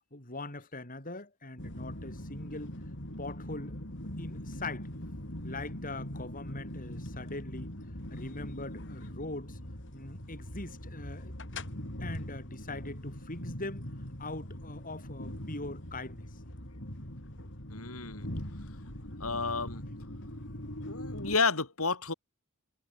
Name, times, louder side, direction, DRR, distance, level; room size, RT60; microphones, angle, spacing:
voice 1, 0.1-2.7 3.2-3.8 4.2-4.9 5.4-7.7 8.1-9.6 9.9-11.6 12.0-13.9 14.2-16.3, left 2 dB, 40° left, 7.9 m, -42 dB
sound 1, 1.6-21.4, left 1 dB, 60° left, 6.6 m, -42 dB
voice 2, 17.7-18.3 19.2-19.8 20.9-22.1, left 4 dB, 85° left, 5.5 m, -31 dB
head